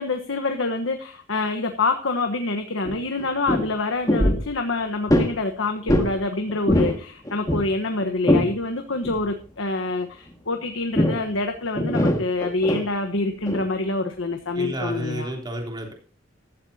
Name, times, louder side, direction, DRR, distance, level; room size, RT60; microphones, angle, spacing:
voice 1, 0.0-15.3, left 3 dB, 85° left, 5 dB, 1.3 m, -26 dB
sound 1, 2.8-2.9 3.2-3.7 4.1-4.5 5.1-5.3 5.9-6.1 6.5-7.0 7.3-8.5 9.0-9.2 10.9-11.3 11.8-12.8 13.5-13.6, left 1 dB, 20° left, 2.0 m, -21 dB
voice 2, 14.5-15.9, right 1 dB, 25° right, 2 dB, 3.4 m, -31 dB
15.0 x 12.5 x 2.9 m, 0.41 s
head